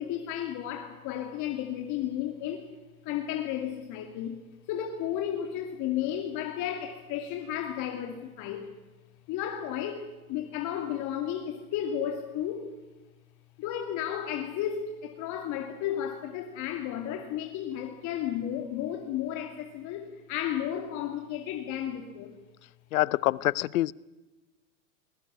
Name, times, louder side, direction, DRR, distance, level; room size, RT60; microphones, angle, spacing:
voice 1, 0.0-2.7 3.0-4.4 4.7-8.7 9.3-12.7 13.6-22.3, left 10 dB, 45° left, 4 dB, 2.6 m, -33 dB
voice 2, 22.9-23.9, left 15 dB, 75° left, 23 dB, 0.8 m, -26 dB
20.5 x 20.0 x 9.9 m, 1.1 s
hypercardioid pair, 115°, 42 cm